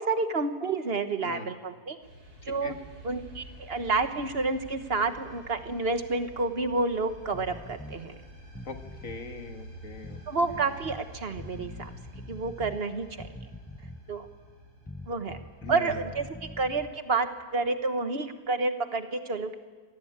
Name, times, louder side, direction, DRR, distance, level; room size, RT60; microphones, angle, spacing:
voice 1, 0.0-2.0 2.5-2.7 3.0-8.2 10.3-11.9 12.3-13.3 14.1-14.3 15.1-15.4 15.7-16.3 16.6-19.6, right 3 dB, 40° right, 9 dB, 1.4 m, -29 dB
sound 1, 2.0-17.7, equal, 70° right, 6.6 m, -49 dB
voice 2, 2.4-2.8 8.7-10.8 15.6-16.0, left 3 dB, 55° left, 6 dB, 1.9 m, -42 dB
sound 2, 7.3-8.0 8.5-9.3 10.0-11.0 11.4-12.8 13.2-14.2 14.9-16.9, left 1 dB, 15° left, 0.3 m, -44 dB
26.5 x 18.5 x 8.8 m, 1.5 s
omnidirectional pair, 1.7 m